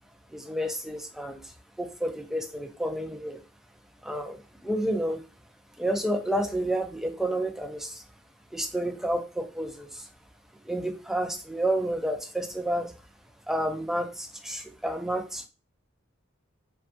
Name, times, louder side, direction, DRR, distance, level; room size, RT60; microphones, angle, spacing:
voice 1, 0.3-1.5 1.8-3.4 4.0-5.2 5.8-8.0 8.5-10.1 10.6-12.9 13.5-15.5, right 1 dB, ahead, 5 dB, 0.3 m, -30 dB
2.5 x 2.3 x 2.6 m, 0.32 s
head